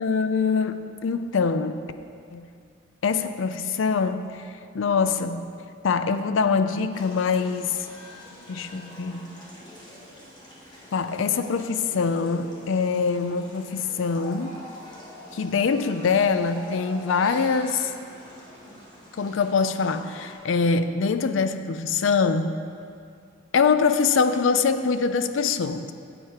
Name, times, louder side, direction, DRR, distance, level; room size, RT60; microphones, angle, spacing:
voice 1, 0.0-1.9 2.3-2.5 3.0-5.6 5.8-7.9 8.5-9.3 10.9-14.6 15.3-17.9 19.2-22.6 23.5-25.9, left 5 dB, 75° left, 11 dB, 0.4 m, -24 dB
sound 1, 6.9-20.3, left 1 dB, 20° left, 1.6 m, -45 dB
9.3 x 7.4 x 4.8 m, 2.3 s
head